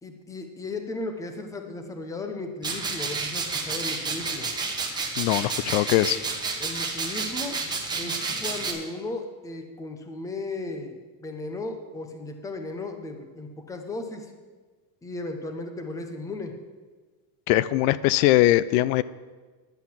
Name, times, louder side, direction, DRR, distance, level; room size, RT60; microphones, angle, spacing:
voice 1, 0.0-4.5 6.6-7.6 8.0-14.3 15.0-16.5, left 2 dB, 5° left, 6 dB, 0.6 m, -35 dB
sound 1, 2.6-8.7, right 4 dB, 10° right, 1.1 m, -30 dB
voice 2, 5.2-6.2 17.5-19.0, left 15 dB, 70° left, 17 dB, 0.6 m, -21 dB
10.5 x 7.9 x 7.2 m, 1.4 s
cardioid pair, 175°, 50 cm